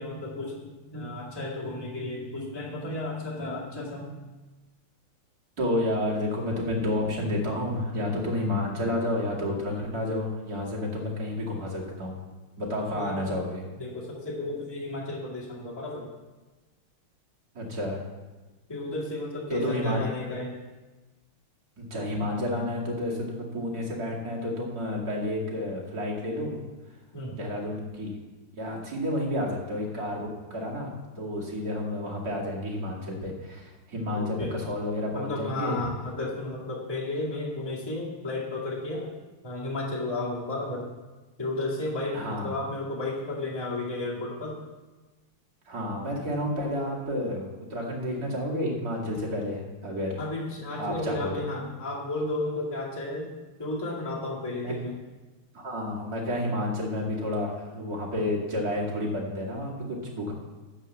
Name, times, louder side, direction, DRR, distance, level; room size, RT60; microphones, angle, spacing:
voice 1, 0.0-4.2 12.9-13.2 13.8-16.1 18.7-20.5 27.1-27.4 34.1-34.5 35.1-39.1 39.4-40.8 41.4-44.6 50.2-53.3 53.6-54.9, left 2 dB, 10° left, -5 dB, 2.0 m, -33 dB
voice 2, 5.6-12.2 12.6-13.6 17.5-18.0 19.5-20.0 21.8-26.6 27.3-28.1 28.5-35.8 42.1-42.6 45.7-50.2 50.8-51.4 54.5-54.7 55.5-60.3, left 1 dB, 45° right, -3 dB, 2.7 m, -30 dB
12.5 x 4.9 x 7.7 m, 1.2 s
omnidirectional pair, 2.4 m